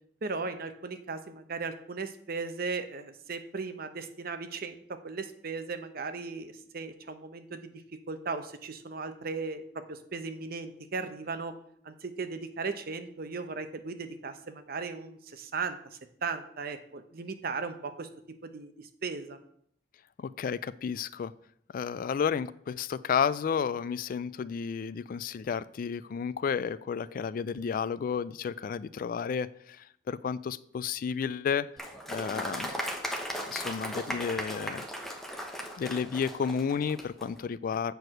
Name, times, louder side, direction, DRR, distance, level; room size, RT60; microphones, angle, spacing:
voice 1, 0.2-11.5 11.8-18.1 18.4-19.4, right 4 dB, 55° right, 9 dB, 0.8 m, -37 dB
voice 2, 20.2-21.3 21.7-31.7 32.1-32.7 33.5-34.8 35.8-37.9, left 6 dB, 50° left, 18 dB, 0.3 m, -32 dB
Applause, 31.8-37.3, equal, ahead, 0.9 m, -37 dB
7.9 x 4.6 x 6.4 m, 0.68 s
head